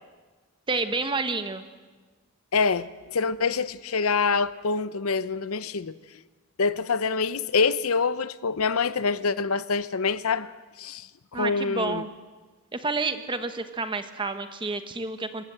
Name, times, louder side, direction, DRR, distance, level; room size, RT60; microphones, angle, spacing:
voice 1, 0.7-1.6 11.3-12.1 12.7-15.4, right 3 dB, 20° right, 1.3 m, -29 dB
voice 2, 2.5-6.0 6.6-10.5 10.8-11.1 11.3-12.0, left 4 dB, 85° left, 0.8 m, -25 dB
27.0 x 17.0 x 7.8 m
head